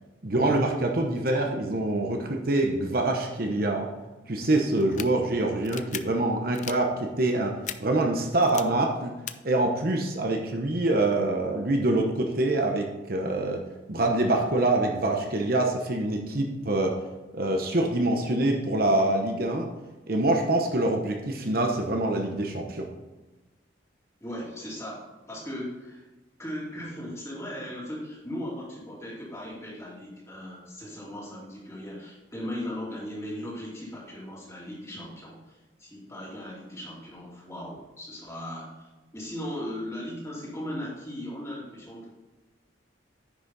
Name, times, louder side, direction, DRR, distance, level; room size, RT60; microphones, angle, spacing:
voice 1, 0.2-3.9 4.3-9.1 9.4-13.6 13.9-17.0 17.3-19.7 20.1-22.9, right 2 dB, 50° right, 2 dB, 0.9 m, -25 dB
sound 1, 4.8-5.1 5.6-6.0 6.5-6.8 7.6-7.8 8.4-8.6 9.3-9.4, left 11 dB, 40° left, 0.4 m, -35 dB
voice 2, 24.2-26.0 26.4-38.8 39.1-42.1, left 1 dB, 15° left, -5 dB, 2.8 m, -38 dB
9.9 x 6.2 x 4.1 m, 1.2 s
head